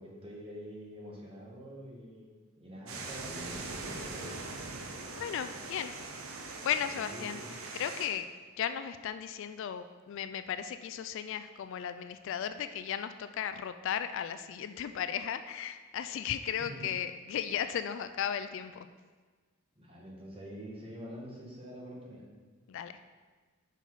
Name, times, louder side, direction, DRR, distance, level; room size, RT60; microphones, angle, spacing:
voice 1, 0.0-4.4 6.9-7.6 16.6-16.8 19.8-22.2, equal, 25° right, -3 dB, 1.5 m, -46 dB
sound 1, 2.9-8.1, right 3 dB, 90° right, 0.8 m, -42 dB
voice 2, 5.1-5.9 6.6-7.4 7.7-8.3 8.6-18.9 22.7-23.0, left 9 dB, 65° left, 10 dB, 0.3 m, -35 dB
5.8 x 5.5 x 4.6 m, 1.4 s
head